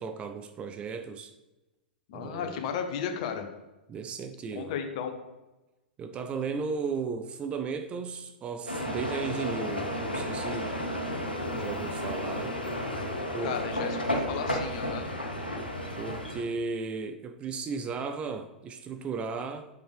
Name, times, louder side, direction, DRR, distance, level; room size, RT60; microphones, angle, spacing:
voice 1, 0.0-1.3 2.1-2.7 3.9-4.7 6.0-10.8 11.5-12.6 13.3-13.5 16.0-19.7, right 5 dB, 20° right, 0.4 m, -35 dB
voice 2, 2.1-3.5 4.5-5.1 13.4-15.1, left 8 dB, 45° left, 0.9 m, -34 dB
sound 1, 8.7-16.4, equal, 85° left, 1.0 m, -32 dB
6.5 x 5.1 x 3.3 m
figure-of-eight pair, 100°, 5 cm